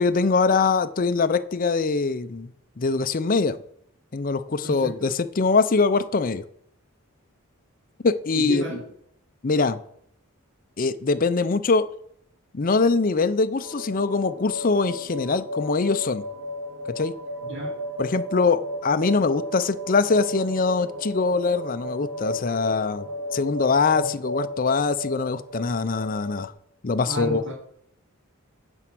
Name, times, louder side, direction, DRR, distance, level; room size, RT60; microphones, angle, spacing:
voice 1, 0.0-2.5 2.8-3.6 4.1-6.4 8.0-8.6 9.4-9.8 10.8-11.9 12.5-16.2 16.9-17.1 18.0-23.1 23.3-26.5 26.8-27.4, left 4 dB, 40° left, 11 dB, 0.5 m, -23 dB
voice 2, 4.6-5.1 8.4-8.8 17.4-17.8 23.9-24.1 27.1-27.5, right 2 dB, 55° right, -6 dB, 2.3 m, -32 dB
sound 1, 13.6-26.5, left 1 dB, 75° right, 2.0 m, -34 dB
9.8 x 4.5 x 7.6 m, 0.69 s
head